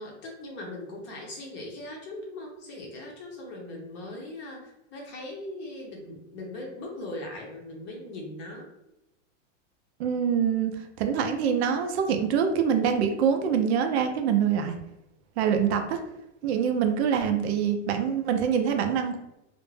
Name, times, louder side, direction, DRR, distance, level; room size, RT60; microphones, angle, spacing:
voice 1, 0.0-8.7, left 1 dB, 30° left, 0 dB, 0.6 m, -39 dB
voice 2, 10.0-14.7 15.4-16.0 16.4-19.2, right 7 dB, 60° right, 5 dB, 0.5 m, -25 dB
2.4 x 2.1 x 3.2 m, 0.87 s
supercardioid pair, 150°, 38 cm